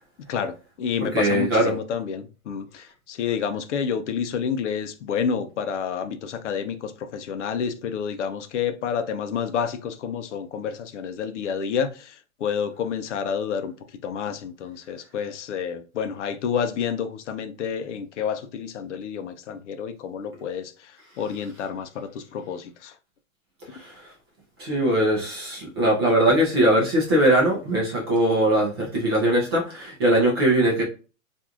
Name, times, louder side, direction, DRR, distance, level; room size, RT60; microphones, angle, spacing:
voice 1, 0.3-13.7 14.0-22.9, left 7 dB, 55° left, 0.5 m, -29 dB
voice 2, 1.0-1.7 23.7-23.9 24.6-30.8, right 1 dB, 20° right, 0.4 m, -21 dB
2.9 x 2.5 x 2.4 m
hypercardioid pair, 145°, 42 cm